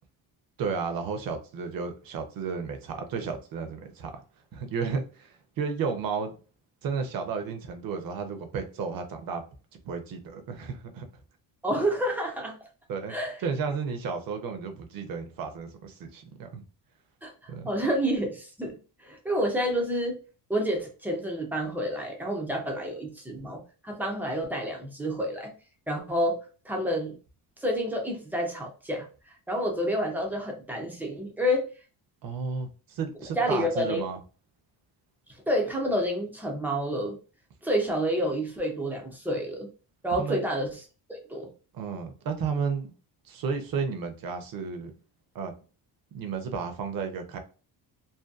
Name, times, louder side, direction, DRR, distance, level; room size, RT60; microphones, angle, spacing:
voice 1, 0.6-4.1 4.5-6.3 6.8-9.4 9.9-11.0 12.9-13.1 13.4-16.6 17.5-17.7 32.2-34.2 40.2-40.5 41.7-42.9 43.2-44.9 45.3-45.5 46.1-47.4, right 5 dB, 50° right, 0.6 m, -33 dB
voice 2, 11.6-12.6 13.1-13.4 17.2-20.2 20.5-25.5 25.9-26.4 26.6-27.1 27.6-31.7 33.4-34.0 35.5-37.2 37.6-39.7 40.0-40.8 41.1-41.5, equal, 5° right, 0.3 m, -29 dB
2.6 x 2.2 x 2.3 m
cardioid pair, 165°, 44 cm